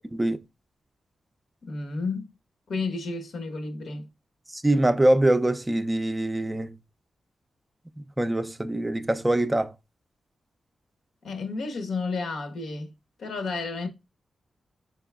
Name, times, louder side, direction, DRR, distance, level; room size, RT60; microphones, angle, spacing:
voice 1, 0.1-0.4 4.5-6.8 8.2-9.7, right 1 dB, 15° right, 0.4 m, -23 dB
voice 2, 1.6-2.4 2.7-4.1 11.2-12.9 13.2-13.9, left 3 dB, 85° left, 1.0 m, -31 dB
5.0 x 4.6 x 2.3 m
wide cardioid pair, 105°, 0 cm